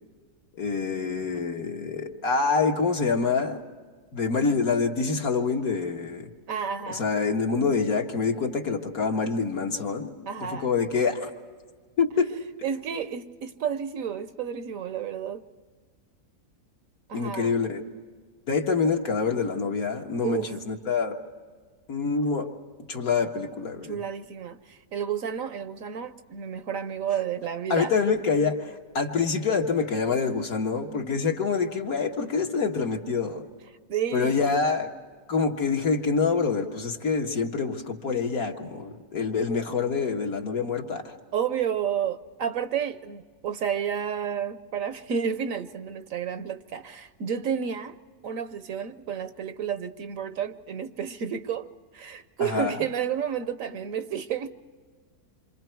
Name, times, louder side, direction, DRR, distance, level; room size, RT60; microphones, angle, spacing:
voice 1, 0.6-3.6 4.1-6.3 6.9-10.1 10.5-11.3 12.0-12.3 17.1-17.8 18.5-21.2 21.9-22.5 22.9-24.0 27.7-33.4 34.1-34.9 35.3-41.1 52.4-52.8, left 5 dB, 65° left, 2.0 m, -26 dB
voice 2, 6.5-7.0 10.3-10.7 12.6-15.4 17.1-17.7 20.2-20.5 23.9-27.9 33.9-34.8 41.3-47.9 48.2-54.5, right 8 dB, 65° right, 1.1 m, -31 dB
28.0 x 26.0 x 4.6 m
omnidirectional pair, 1.6 m